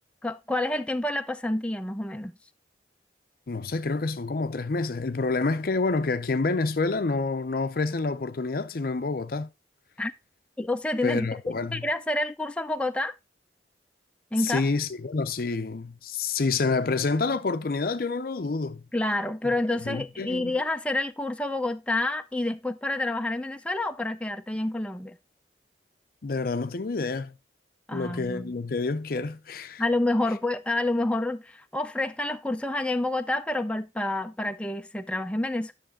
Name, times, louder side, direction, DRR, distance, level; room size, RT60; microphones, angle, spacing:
voice 1, 0.2-2.3 10.0-10.1 10.6-11.3 11.7-13.1 14.3-14.7 18.9-25.2 27.9-28.5 29.8-35.7, left 2 dB, 5° left, 0.4 m, -28 dB
voice 2, 3.5-9.5 11.0-11.9 14.4-18.8 19.7-20.6 26.2-27.3 27.9-29.8, left 3 dB, 55° left, 0.6 m, -28 dB
10.0 x 6.6 x 3.6 m
head